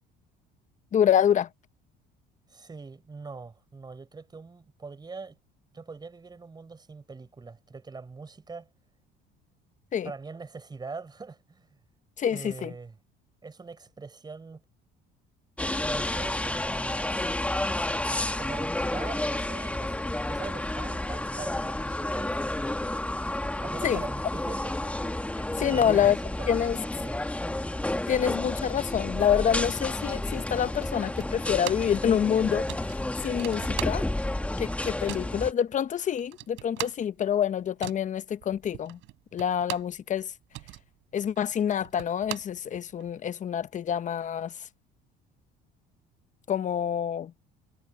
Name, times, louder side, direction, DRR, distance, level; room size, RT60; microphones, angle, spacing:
voice 1, 0.9-1.5 9.9-10.1 12.2-12.7 23.8-24.0 25.6-26.2 26.5-26.8 28.1-32.7 33.2-34.0 34.6-39.0 39.3-40.3 41.1-44.5 46.5-47.3, left 9 dB, 40° left, 0.9 m, -26 dB
voice 2, 2.5-5.4 5.7-8.7 10.0-11.8 12.3-13.0 13.4-14.6 15.8-17.2 18.4-20.0 20.3-22.3 23.6-24.8 25.6-26.5 26.9-27.2, right 4 dB, 20° right, 5.8 m, -42 dB
sound 1, 15.6-35.5, left 1 dB, 5° left, 1.7 m, -31 dB
sound 2, 31.2-32.0 32.3-32.4 32.7-34.4 34.6-35.4 35.9-36.0 36.2-40.0 40.3-43.1, right 19 dB, 80° right, 6.1 m, -40 dB
cardioid pair, 115°, 20 cm